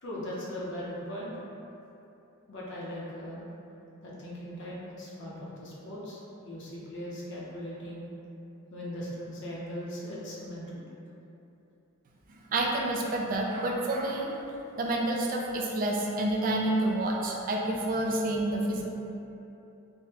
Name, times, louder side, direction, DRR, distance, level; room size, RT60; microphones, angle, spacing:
voice 1, 0.0-1.4 2.5-3.4 4.0-8.1 8.7-10.8, equal, 55° left, -6 dB, 0.6 m, -39 dB
voice 2, 12.5-14.3 14.8-18.8, right 1 dB, 40° right, -1 dB, 0.3 m, -28 dB
3.5 x 2.1 x 2.8 m, 2.9 s
head